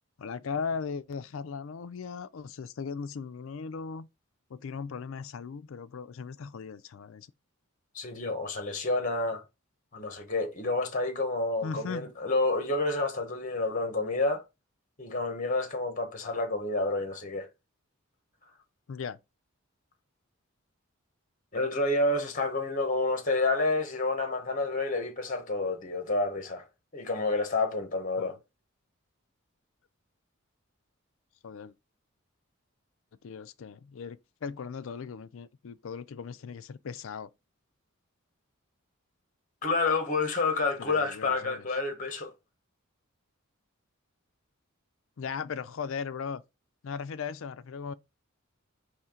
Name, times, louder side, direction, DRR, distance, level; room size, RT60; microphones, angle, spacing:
voice 1, 0.2-4.1 4.5-7.3 11.6-12.1 18.9-19.2 28.2-28.4 31.4-31.7 33.2-37.3 40.8-41.6 45.2-46.4 46.8-47.9, left 5 dB, 65° left, 0.4 m, -38 dB
voice 2, 7.9-9.4 9.9-14.4 15.0-17.5 21.5-26.6 26.9-28.4 39.6-42.3, left 2 dB, 40° left, 1.0 m, -29 dB
4.4 x 3.1 x 3.6 m
head